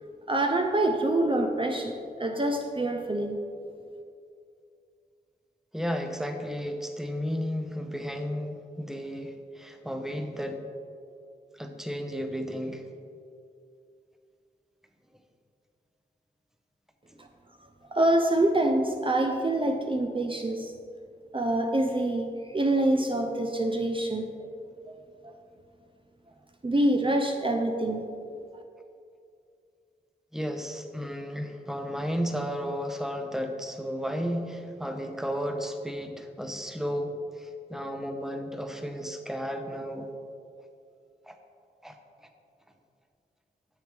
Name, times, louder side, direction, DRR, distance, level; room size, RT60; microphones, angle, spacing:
voice 1, 0.3-3.4 17.2-17.3 17.9-20.7 21.3-24.3 26.6-28.1 28.5-28.6, right 1 dB, 30° right, 3 dB, 0.6 m, -26 dB
voice 2, 5.7-10.6 11.5-12.9 30.3-40.1 41.3-41.4 41.8-42.0, equal, ahead, 5 dB, 0.7 m, -33 dB
7.2 x 6.3 x 3.4 m, 2.4 s
cardioid pair, 45°, 18 cm